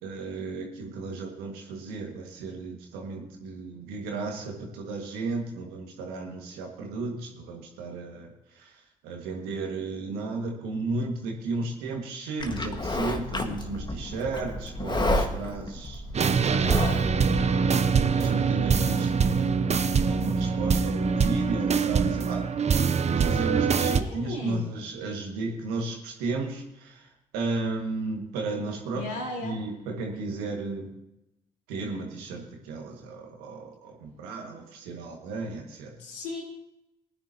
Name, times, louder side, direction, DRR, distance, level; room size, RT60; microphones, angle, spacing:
voice 1, 0.0-17.4 18.1-30.9 31.7-36.0, right 3 dB, 80° right, 1 dB, 2.0 m, -34 dB
Livestock farm animals working animals, 12.4-17.5, left 1 dB, 30° left, 1.8 m, -31 dB
sound 1, 16.1-24.0, right 5 dB, 45° right, 0.8 m, -24 dB
voice 2, 23.8-24.7 28.9-29.6 36.0-36.4, left 2 dB, 80° left, -3 dB, 4.2 m, -35 dB
19.5 x 10.0 x 3.0 m, 0.89 s
hypercardioid pair, 40°, 16 cm